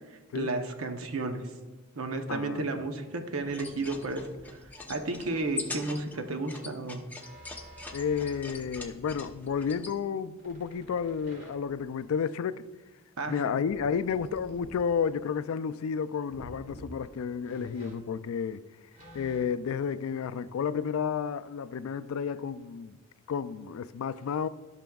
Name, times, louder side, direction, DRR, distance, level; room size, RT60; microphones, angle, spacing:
voice 1, 0.3-1.4 2.0-4.3 4.9-7.0 13.2-13.3, right 2 dB, 85° right, 0.8 m, -32 dB
voice 2, 2.3-2.9 7.9-12.6 13.3-18.6 19.1-23.0 23.3-24.5, left 6 dB, 80° left, 0.3 m, -31 dB
sound 1, 3.4-9.9, left 3 dB, 10° left, 0.7 m, -43 dB
sound 2, 7.2-8.5 10.4-11.9 13.6-14.8 16.3-16.9 17.4-19.7, right 1 dB, 40° right, 2.5 m, -49 dB
14.0 x 6.0 x 2.3 m
head